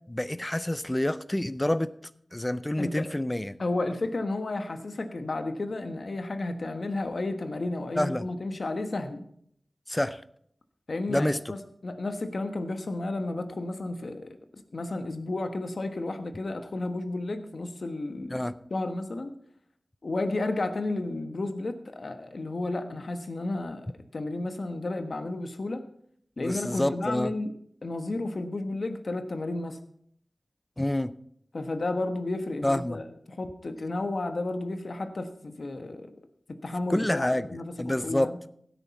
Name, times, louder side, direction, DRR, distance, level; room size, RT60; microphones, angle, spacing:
voice 1, 0.1-1.9 2.3-3.6 8.0-8.2 9.9-10.2 11.1-11.4 18.3-18.6 26.4-27.3 30.8-31.1 32.6-33.0 36.9-37.5 37.8-38.3, left 1 dB, 20° left, 15 dB, 0.5 m, -27 dB
voice 2, 2.8-3.1 3.6-9.3 10.9-18.4 18.7-19.3 20.0-23.9 24.1-25.8 26.4-27.5 27.8-29.8 31.5-36.2 36.5-38.4, left 2 dB, 65° left, 8 dB, 1.2 m, -32 dB
16.0 x 9.0 x 4.2 m, 0.67 s
wide cardioid pair, 65°, 0 cm